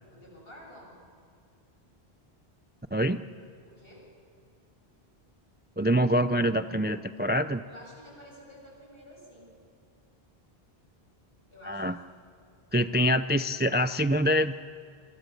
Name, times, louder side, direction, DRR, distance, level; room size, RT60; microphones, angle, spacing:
voice 1, 0.1-1.0 3.6-4.1 7.7-9.5 11.5-11.8, equal, 65° left, -2 dB, 7.9 m, -50 dB
voice 2, 2.9-3.2 5.8-7.6 11.7-12.0 12.7-14.5, equal, 15° right, 11 dB, 0.4 m, -25 dB
27.5 x 26.0 x 7.0 m, 2.2 s
omnidirectional pair, 1.0 m